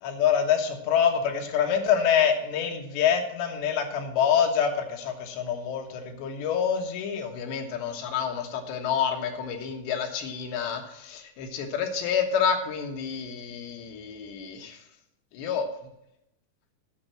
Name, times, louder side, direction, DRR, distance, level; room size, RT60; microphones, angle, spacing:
voice 1, 0.0-14.8 15.3-15.7, left 8 dB, 75° left, 4 dB, 3.5 m, -27 dB
9.7 x 6.7 x 7.5 m, 0.82 s
omnidirectional pair, 5.2 m